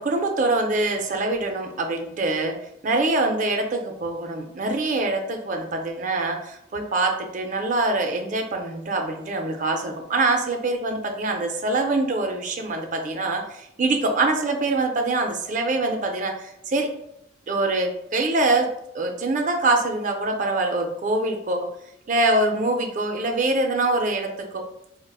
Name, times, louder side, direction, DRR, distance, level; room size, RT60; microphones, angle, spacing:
voice 1, 0.0-2.6 2.8-16.3 16.7-16.9 17.5-18.7 18.9-21.7 22.1-24.6, right 2 dB, 40° right, 4 dB, 0.4 m, -24 dB
4.6 x 2.0 x 2.3 m, 0.78 s
head